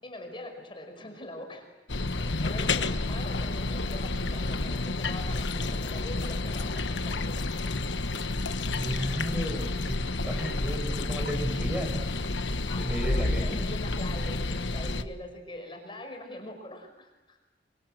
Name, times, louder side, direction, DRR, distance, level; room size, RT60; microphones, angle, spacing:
voice 1, 0.0-1.8 2.2-7.8 12.2-17.4, left 1 dB, 30° left, 4 dB, 5.3 m, -43 dB
sound 1, 1.9-15.0, left 2 dB, 85° left, 1.3 m, -30 dB
voice 2, 8.7-10.0 10.2-12.0 12.8-13.6, equal, 5° right, 3 dB, 5.1 m, -33 dB
30.0 x 24.0 x 7.7 m, 1.1 s
head